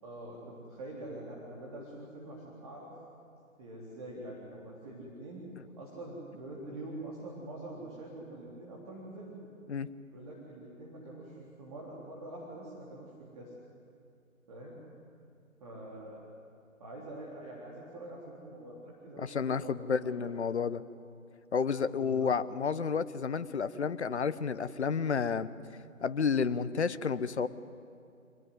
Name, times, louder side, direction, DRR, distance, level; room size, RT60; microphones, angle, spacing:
voice 1, 0.0-2.9 3.6-5.4 5.8-9.3 10.1-13.5 14.5-14.8 15.6-16.2 16.8-20.2 22.0-22.3, right 1 dB, 25° right, -4 dB, 3.6 m, -45 dB
voice 2, 19.2-20.8 21.5-25.5 26.0-27.5, left 6 dB, 55° left, 14 dB, 1.0 m, -31 dB
25.0 x 18.0 x 9.5 m, 2.4 s
figure-of-eight pair, 150°, 41 cm